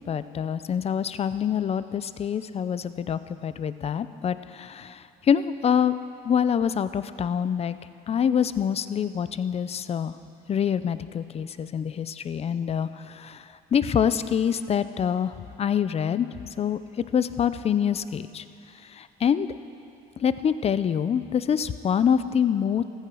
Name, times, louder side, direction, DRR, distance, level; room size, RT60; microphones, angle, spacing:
voice 1, 0.1-5.9 6.2-7.8 8.1-10.1 10.5-13.4 13.7-15.3 15.6-16.3 16.6-16.8 17.1-18.4 19.0-19.5 20.2-22.8, left 8 dB, 35° left, 13 dB, 0.6 m, -25 dB
15.0 x 15.0 x 6.3 m, 2.7 s
cardioid pair, 110°, 17 cm